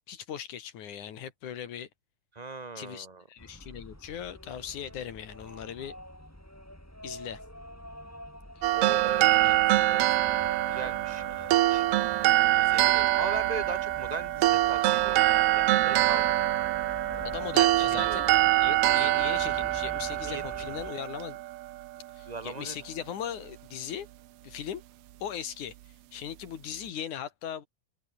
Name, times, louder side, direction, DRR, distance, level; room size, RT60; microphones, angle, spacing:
voice 1, 0.1-1.9 2.8-6.0 7.0-7.4 8.6-8.7 9.4-9.6 17.3-21.4 22.1-24.1 24.4-24.8 25.2-25.8 26.1-27.7, left 9 dB, 85° left, 3.4 m, -39 dB
voice 2, 2.3-3.2 8.7-10.1 10.7-11.9 12.4-16.3 17.5-18.2 20.2-20.6 22.3-22.7, right 3 dB, 15° right, 2.2 m, -39 dB
sound 1, 3.4-20.9, equal, 5° left, 6.2 m, -46 dB
sound 2, 8.6-21.8, right 15 dB, 75° right, 1.4 m, -25 dB
omnidirectional pair, 3.4 m